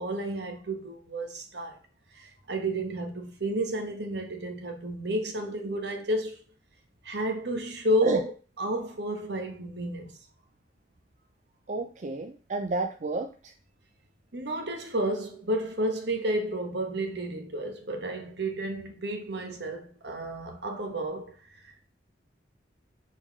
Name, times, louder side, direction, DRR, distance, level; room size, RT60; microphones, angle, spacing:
voice 1, 0.0-1.8 2.1-6.4 7.0-8.3 8.6-10.1 14.3-21.4 21.6-21.7, right 1 dB, 65° right, 1.2 m, -31 dB
voice 2, 11.7-13.5, right 3 dB, 40° right, 0.4 m, -31 dB
4.8 x 4.0 x 5.3 m
head